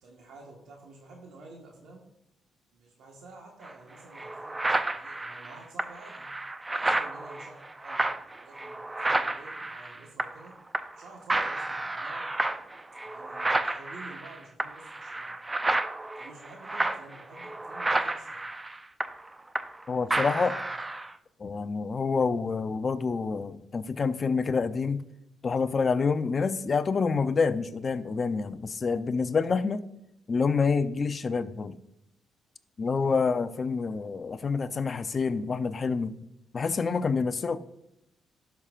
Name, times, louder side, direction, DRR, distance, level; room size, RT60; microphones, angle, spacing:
voice 1, 0.0-2.1 2.7-6.3 6.7-10.5 10.9-12.8 13.0-15.4 16.2-18.4 20.0-20.8 32.9-33.2, right 2 dB, 75° right, -1 dB, 1.4 m, -50 dB
sound 1, 3.6-3.7 4.1-10.5 10.7-11.0 11.3-19.8 20.1-21.1, right 2 dB, 20° right, 0.5 m, -31 dB
voice 2, 19.9-20.5 21.4-25.0 25.4-29.8 30.3-31.7 32.8-36.1 36.5-37.6, left 5 dB, 40° left, 12 dB, 0.5 m, -27 dB
12.0 x 5.7 x 2.5 m, 0.81 s
cardioid pair, 90°, 0 cm